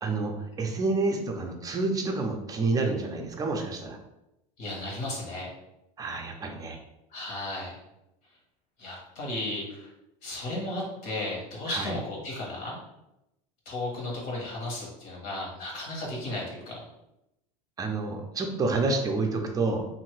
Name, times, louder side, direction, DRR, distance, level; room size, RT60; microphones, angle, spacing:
voice 1, 0.0-4.0 6.0-6.8 11.7-11.9 17.8-19.9, right 3 dB, 20° right, 2 dB, 0.5 m, -29 dB
voice 2, 4.6-5.5 7.1-7.8 8.8-9.9 10.2-12.8 13.6-16.9, left 1 dB, 60° left, -2 dB, 1.3 m, -34 dB
2.7 x 2.6 x 3.2 m, 0.88 s
supercardioid pair, 125°, 18 cm